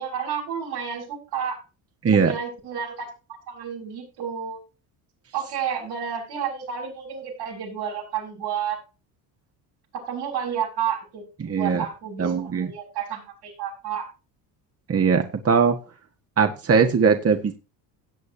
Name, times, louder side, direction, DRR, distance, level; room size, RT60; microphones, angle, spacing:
voice 1, 0.0-1.6 2.1-3.1 3.5-4.6 5.3-8.8 9.9-14.1, right 8 dB, 80° right, -3 dB, 6.5 m, -31 dB
voice 2, 2.0-2.3 11.4-11.8 12.2-12.7 14.9-15.8 16.4-17.6, right 5 dB, 30° right, 5 dB, 1.5 m, -20 dB
17.0 x 8.1 x 2.8 m, 0.31 s
hypercardioid pair, 65°, 50 cm